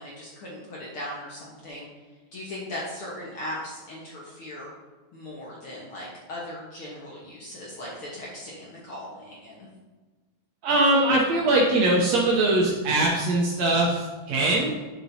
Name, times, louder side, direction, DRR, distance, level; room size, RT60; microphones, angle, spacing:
voice 1, 0.0-1.9 2.3-4.7 5.1-9.7, left 1 dB, 55° left, -5 dB, 1.6 m, -38 dB
voice 2, 10.6-14.7, right 2 dB, 75° right, -1 dB, 1.7 m, -21 dB
10.5 x 5.9 x 2.7 m, 1.3 s
omnidirectional pair, 3.8 m